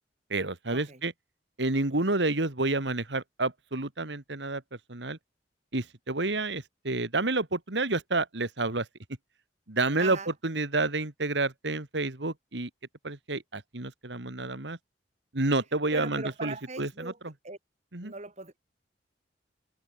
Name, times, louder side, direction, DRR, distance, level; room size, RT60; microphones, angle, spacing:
voice 1, 0.3-1.1 1.6-4.6 4.9-5.2 5.7-8.9 9.7-12.7 13.0-14.8 15.3-17.3 17.9-18.1, right 2 dB, 85° right, 2.3 m, -29 dB
voice 2, 10.0-10.3 15.9-17.2 17.4-17.6 18.0-18.6, right 3 dB, 40° right, 4.8 m, -40 dB
head